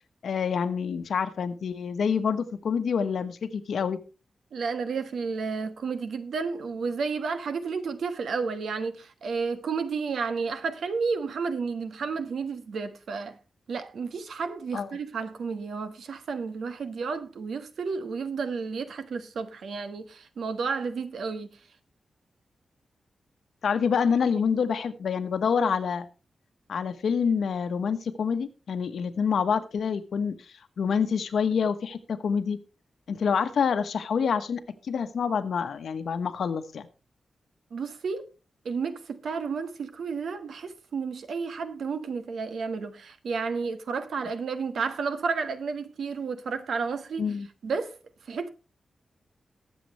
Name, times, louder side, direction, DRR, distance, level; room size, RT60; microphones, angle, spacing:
voice 1, 0.2-4.0 14.7-14.9 23.6-26.1 26.7-30.4 30.8-32.6 33.1-36.9 47.2-47.5, left 6 dB, 80° left, 1.3 m, -27 dB
voice 2, 4.5-13.4 13.7-21.6 37.7-38.3 38.6-47.3 47.6-48.0 48.2-48.5, right 5 dB, 85° right, 1.4 m, -31 dB
21.5 x 7.6 x 3.2 m
wide cardioid pair, 165°, 0 cm